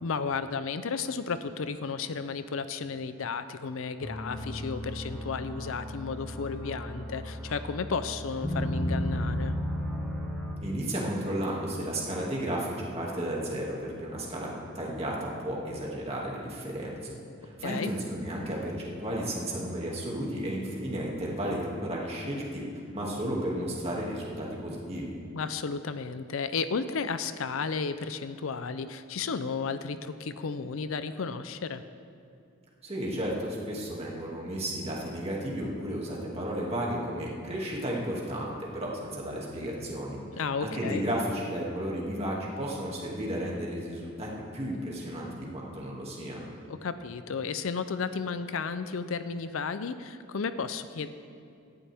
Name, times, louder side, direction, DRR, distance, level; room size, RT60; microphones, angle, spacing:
voice 1, 0.0-9.6 17.6-17.9 25.3-31.8 40.3-41.0 46.7-51.1, left 5 dB, 70° left, 12 dB, 0.5 m, -33 dB
sound 1, 4.0-10.5, equal, 5° left, 1.6 m, -34 dB
voice 2, 10.6-22.6 22.9-25.1 32.8-40.2 40.6-46.5, right 1 dB, 30° right, -4 dB, 2.3 m, -33 dB
17.5 x 11.5 x 3.5 m, 2.4 s
head